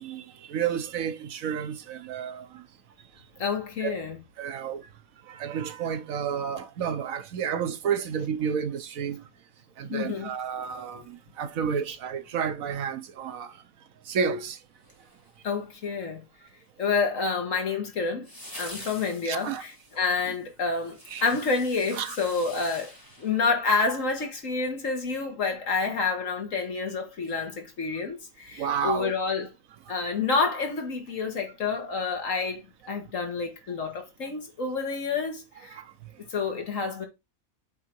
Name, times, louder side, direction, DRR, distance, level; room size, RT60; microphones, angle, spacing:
voice 1, 0.0-2.7 3.8-4.0 4.4-4.9 5.2-9.2 9.8-13.6 14.1-14.6 18.7-18.8 19.2-19.6 20.6-20.7 21.1-21.2 21.9-22.2 28.5-29.1 35.7-36.1, right 7 dB, 75° right, 1.2 m, -31 dB
voice 2, 3.4-4.2 9.8-10.3 15.4-16.2 16.8-18.3 18.6-22.9 23.2-29.5 29.9-32.6 32.9-35.8 36.3-37.1, left 4 dB, 65° left, 1.9 m, -28 dB
sound 1, 14.8-15.7 18.2-24.1 24.4-24.5, left 1 dB, 15° left, 2.0 m, -46 dB
8.3 x 3.7 x 4.5 m
omnidirectional pair, 1.4 m